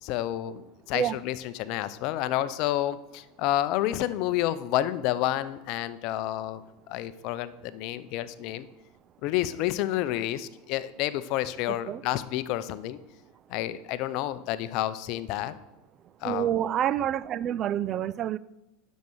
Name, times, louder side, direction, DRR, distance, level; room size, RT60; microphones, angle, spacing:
voice 1, 0.0-6.6 6.9-8.7 9.2-13.0 13.5-15.6 16.2-16.6, left 13 dB, 60° left, 0.7 m, -29 dB
voice 2, 11.7-12.0 16.2-18.4, right 10 dB, 40° right, 0.4 m, -28 dB
10.5 x 6.4 x 6.3 m
supercardioid pair, 110°, 0 cm